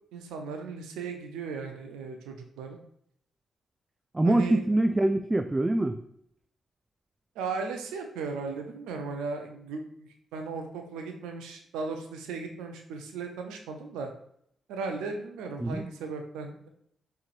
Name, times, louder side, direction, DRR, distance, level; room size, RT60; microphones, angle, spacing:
voice 1, 0.1-2.8 4.2-4.6 7.4-14.1 14.7-16.7, right 4 dB, 85° right, 4 dB, 0.5 m, -36 dB
voice 2, 4.1-6.0 15.6-15.9, right 1 dB, 20° right, 7 dB, 0.3 m, -24 dB
4.5 x 3.2 x 2.5 m, 0.70 s
hypercardioid pair, 45°, 0 cm